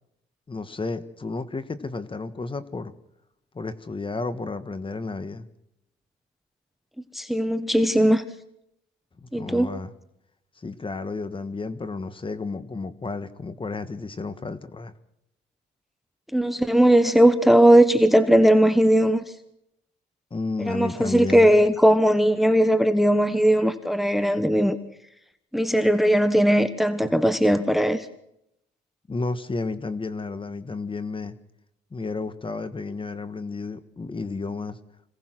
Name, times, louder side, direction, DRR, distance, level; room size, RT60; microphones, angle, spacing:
voice 1, 0.5-2.9 3.5-5.5 9.2-9.9 10.6-14.9 20.3-21.5 29.1-31.3 31.9-34.8, left 3 dB, 25° left, 12 dB, 1.5 m, -32 dB
voice 2, 7.1-8.2 9.3-9.7 16.3-19.2 20.7-24.8 25.5-28.0, right 1 dB, ahead, 11 dB, 1.2 m, -18 dB
26.0 x 18.0 x 6.2 m, 0.81 s
cardioid pair, 90°, 20 cm